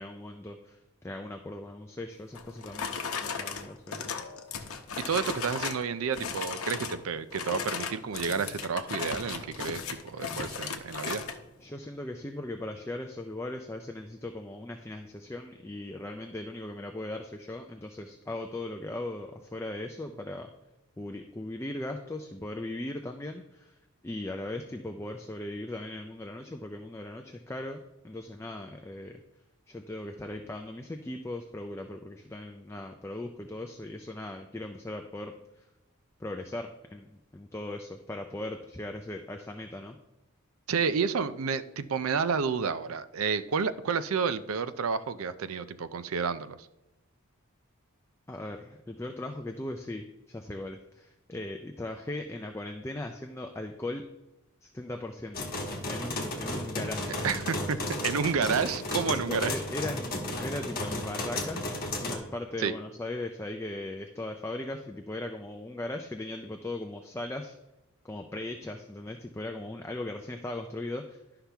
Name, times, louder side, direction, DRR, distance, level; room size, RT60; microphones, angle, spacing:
voice 1, 0.0-4.0 11.6-20.5 21.0-23.8 24.0-29.2 29.7-35.7 36.2-40.0 48.3-54.0 54.6-55.5 55.9-57.2 59.3-61.7 62.0-67.5 68.0-71.2, left 1 dB, 10° left, 4 dB, 0.4 m, -38 dB
sound 1, 2.3-5.9 6.1-7.0 7.3-11.4, left 5 dB, 85° left, 0.8 m, -36 dB
voice 2, 5.0-11.2 40.7-46.6 57.2-57.8 58.0-59.5 62.6-62.7, right 5 dB, 80° right, 13 dB, 0.5 m, -30 dB
sound 2, 55.3-62.2, left 2 dB, 45° left, 1.3 m, -34 dB
11.0 x 5.8 x 3.4 m, 0.98 s
head